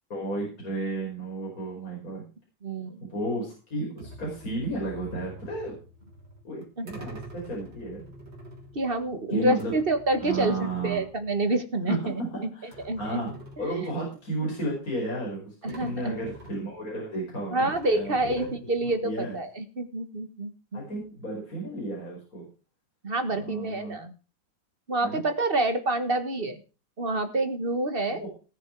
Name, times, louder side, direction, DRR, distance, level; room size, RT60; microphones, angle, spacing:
voice 1, 0.1-2.2 3.0-5.8 6.4-8.0 9.3-9.7 10.2-11.0 11.9-13.3 13.6-18.5 18.8-19.4 20.7-22.5 23.3-24.0 25.0-25.2 28.1-28.3, right 2 dB, 50° left, -3 dB, 5.7 m, -33 dB
voice 2, 2.6-3.0 6.8-6.9 8.7-12.2 12.8-13.2 13.6-13.9 15.6-16.1 17.5-20.8 23.0-24.1 24.9-26.6 27.0-28.2, right 2 dB, 35° right, 9 dB, 1.5 m, -28 dB
sound 1, 4.0-11.8 12.1-12.2 12.7-14.4 15.3-15.4 15.7-17.1 17.7-19.0, right 1 dB, 85° right, 4.1 m, -47 dB
19.0 x 7.2 x 4.6 m, 0.35 s
omnidirectional pair, 2.0 m